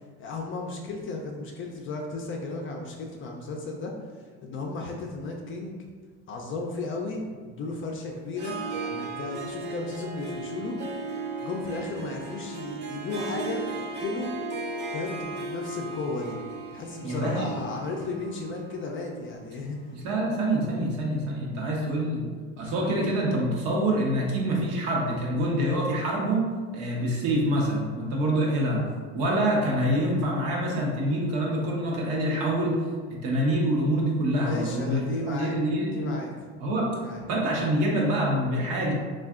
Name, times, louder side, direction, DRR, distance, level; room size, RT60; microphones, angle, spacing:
voice 1, 0.2-3.9 4.4-5.8 6.3-10.8 11.4-14.3 14.9-16.4 16.7-20.0 34.4-35.6 35.9-36.3 36.9-37.3, left 3 dB, 40° left, 0 dB, 0.4 m, -34 dB
Harp, 8.3-20.2, right 3 dB, 30° right, 0.5 m, -36 dB
voice 2, 17.0-17.4 19.9-22.3 22.6-26.4 26.7-28.8 29.1-32.8 33.2-36.1 36.6-36.9 37.3-38.9, right 1 dB, 75° right, -2 dB, 0.9 m, -26 dB
3.4 x 2.4 x 2.3 m, 1.5 s
supercardioid pair, 90°, 33 cm